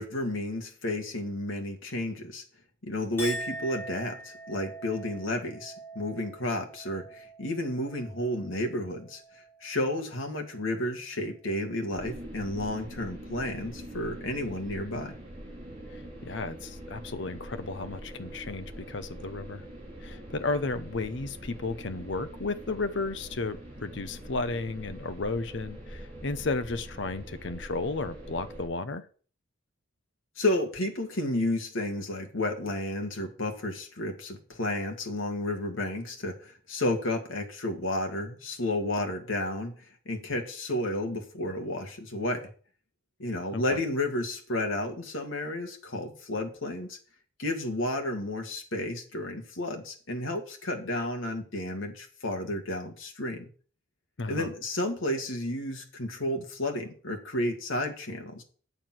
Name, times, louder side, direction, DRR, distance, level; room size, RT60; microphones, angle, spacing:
voice 1, 0.0-2.4 2.8-9.2 9.6-15.1 30.4-39.7 40.1-42.5 43.2-47.0 47.4-53.5 54.3-58.4, left 1 dB, 75° left, 1.9 m, -32 dB
Chink clink, 3.2-9.7 10.1-10.7, right 1 dB, 10° left, 3.2 m, -43 dB
sound 1, 11.9-28.7, right 1 dB, 30° right, 4.8 m, -44 dB
voice 2, 15.9-19.6 20.0-29.1 43.5-43.8 54.2-54.5, left 3 dB, 60° left, 0.7 m, -33 dB
9.2 x 7.0 x 6.0 m
head